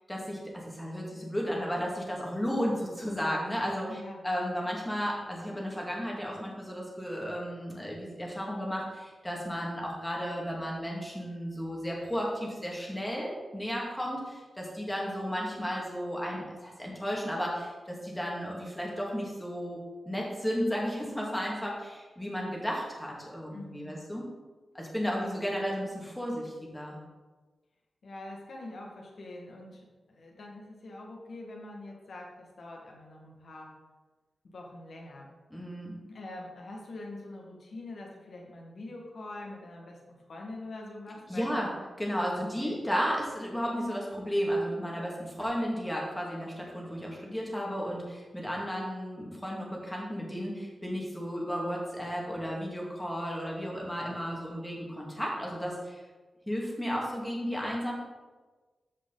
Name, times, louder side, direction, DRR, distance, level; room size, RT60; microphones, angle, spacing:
voice 1, 0.1-19.8 20.1-24.3 24.7-27.0 35.5-35.9 41.3-41.7 42.0-56.0 56.5-57.9, equal, 10° left, -2 dB, 2.1 m, -33 dB
voice 2, 3.9-4.2 23.5-24.0 25.1-25.4 28.0-33.7 34.4-35.3 36.1-41.5 42.6-42.8, left 2 dB, 65° left, -1 dB, 2.0 m, -44 dB
13.5 x 5.2 x 4.0 m, 1.3 s
wide cardioid pair, 135°, 0 cm